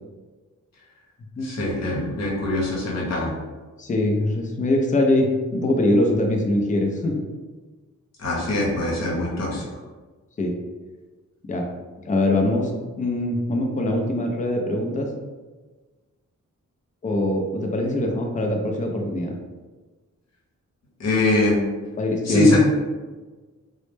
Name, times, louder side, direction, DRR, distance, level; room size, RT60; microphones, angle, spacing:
voice 1, 1.4-3.3 8.2-9.6 21.0-21.6 22.3-22.6, left 1 dB, 55° left, -4 dB, 0.8 m, -23 dB
voice 2, 3.8-7.1 10.4-10.5 11.5-11.6 12.1-15.1 17.0-19.4 22.0-22.6, left 1 dB, 25° left, 2 dB, 0.4 m, -22 dB
2.1 x 2.0 x 3.1 m, 1.3 s
wide cardioid pair, 110°, 31 cm